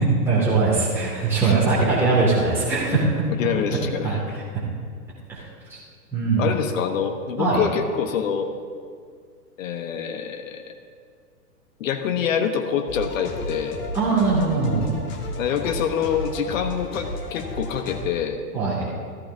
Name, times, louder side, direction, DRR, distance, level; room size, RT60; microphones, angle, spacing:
voice 1, 0.2-3.2 4.0-4.2 5.3-5.4 5.7-5.8 6.1-6.5 7.4-7.6 13.9-14.9 18.5-18.9, right 3 dB, 5° right, -9 dB, 2.5 m, -21 dB
voice 2, 3.4-4.4 6.4-8.5 9.6-10.7 11.8-13.8 15.4-18.4, left 7 dB, 55° left, 7 dB, 1.2 m, -26 dB
sound 1, 12.9-18.0, left 1 dB, 25° left, 1.3 m, -33 dB
15.5 x 14.0 x 2.7 m, 2.1 s
hypercardioid pair, 125°, 48 cm